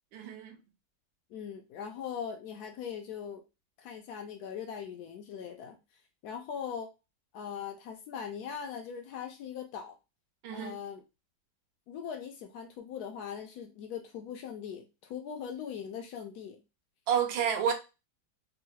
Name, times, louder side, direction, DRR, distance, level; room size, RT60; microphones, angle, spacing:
voice 1, 0.1-0.6 10.4-10.8 17.1-17.7, right 8 dB, 75° right, 1.3 m, -29 dB
voice 2, 1.3-3.4 3.8-5.8 6.2-6.9 7.3-10.0 10.5-11.0 11.9-16.6, left 7 dB, 75° left, 0.9 m, -40 dB
3.7 x 2.0 x 2.8 m
omnidirectional pair, 2.2 m